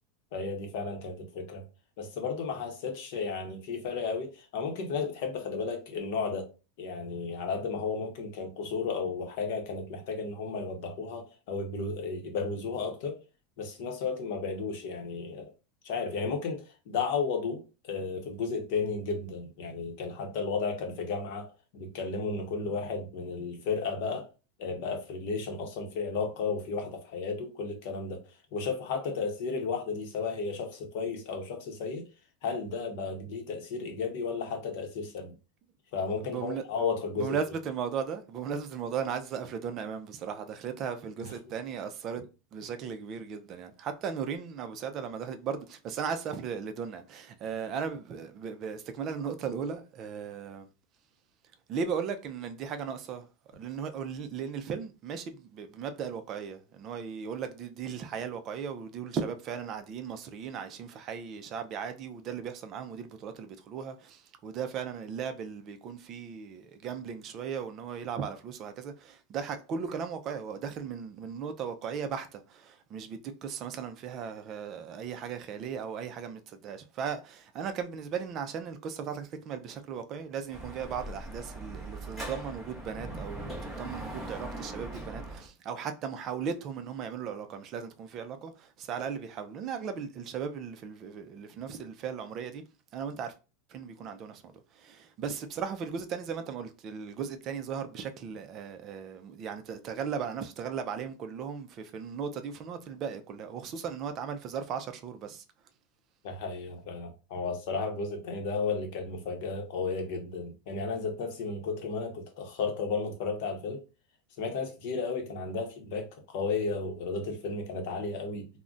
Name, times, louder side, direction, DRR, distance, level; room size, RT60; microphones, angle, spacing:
voice 1, 0.3-1.6 2.0-6.5 6.8-13.2 13.6-15.5 15.8-21.5 21.7-24.3 24.6-28.2 28.5-32.1 32.4-35.3 35.9-37.4 41.2-41.3 106.2-113.8 114.4-118.5, left 4 dB, 55° left, 0.8 m, -33 dB
voice 2, 36.2-36.6 37.2-42.2 42.5-50.7 51.7-53.3 53.5-92.6 92.9-93.3 93.7-105.4, right 7 dB, 30° right, 0.4 m, -37 dB
Dog / Motorcycle, 80.5-85.5, right 2 dB, 5° left, 0.7 m, -40 dB
2.4 x 2.1 x 3.8 m
supercardioid pair, 160°, 0 cm